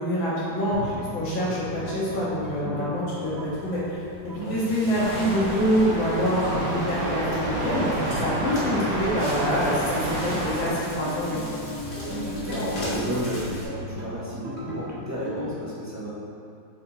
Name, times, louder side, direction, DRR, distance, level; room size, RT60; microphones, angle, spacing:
voice 1, 0.0-11.4, equal, 90° left, -8 dB, 2.3 m, -26 dB
sound 1, 0.7-15.5, equal, 40° right, 1.2 m, -37 dB
Crackle, 3.5-13.6, left 1 dB, 70° left, 2.4 m, -39 dB
sound 2, 4.9-10.7, right 1 dB, 70° right, 1.8 m, -29 dB
voice 2, 12.0-16.1, equal, 15° right, -9 dB, 0.5 m, -32 dB
9.2 x 4.1 x 3.0 m, 2.5 s
omnidirectional pair, 2.0 m